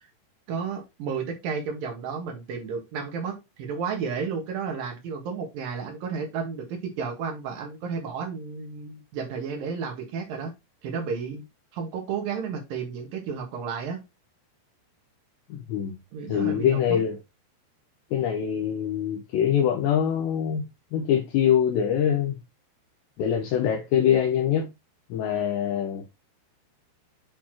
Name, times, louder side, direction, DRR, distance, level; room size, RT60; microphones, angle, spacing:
voice 1, 0.5-10.5 10.8-11.4 11.7-14.0 16.1-17.0, right 6 dB, 60° right, 2.9 m, -32 dB
voice 2, 15.5-16.0 16.3-17.2 18.1-20.6 20.9-22.4 23.2-24.7 25.1-26.0, left 9 dB, 75° left, 2.9 m, -24 dB
8.7 x 4.2 x 3.0 m
omnidirectional pair, 5.4 m